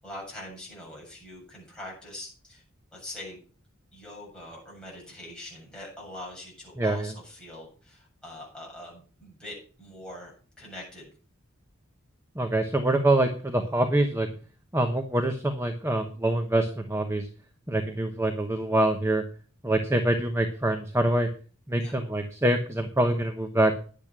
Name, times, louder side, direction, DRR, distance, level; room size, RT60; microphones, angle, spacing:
voice 1, 0.0-2.6 2.9-3.4 3.9-11.1 21.8-21.9, left 1 dB, 5° left, -4 dB, 7.9 m, -43 dB
voice 2, 6.8-7.1 12.4-14.3 14.7-17.3 17.7-19.2 19.6-21.3 21.7-23.7, right 1 dB, 15° right, 5 dB, 1.0 m, -25 dB
10.5 x 8.9 x 6.1 m, 0.40 s
head